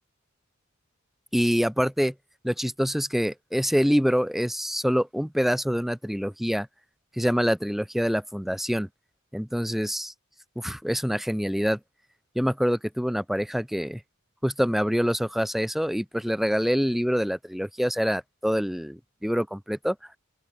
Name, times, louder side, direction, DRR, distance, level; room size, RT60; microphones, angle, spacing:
voice 1, 1.3-2.1 2.4-6.7 7.2-8.9 9.3-10.1 10.5-11.8 12.3-14.0 14.4-19.9, equal, ahead, 1.4 m, -25 dB
open air
head